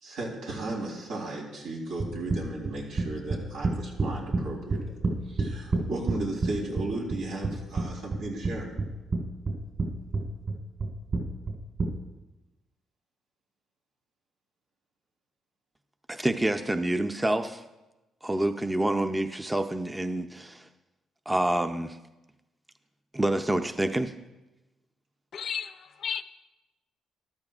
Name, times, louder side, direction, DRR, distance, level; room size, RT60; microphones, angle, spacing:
voice 1, 0.0-4.9 5.3-8.7, right 2 dB, 90° right, 3.5 m, -35 dB
sound 1, 2.0-4.4 4.7-6.5 6.8-7.8 8.1-9.2 9.4-9.9 10.1-11.9, right 3 dB, 50° right, 4.0 m, -27 dB
voice 2, 16.1-17.6 18.2-20.7 21.3-22.0 23.1-24.1, right 1 dB, 10° right, 0.6 m, -27 dB
voice 3, 25.3-26.2, left 7 dB, 60° left, 0.5 m, -33 dB
14.0 x 12.5 x 2.4 m
cardioid pair, 90°, 0 cm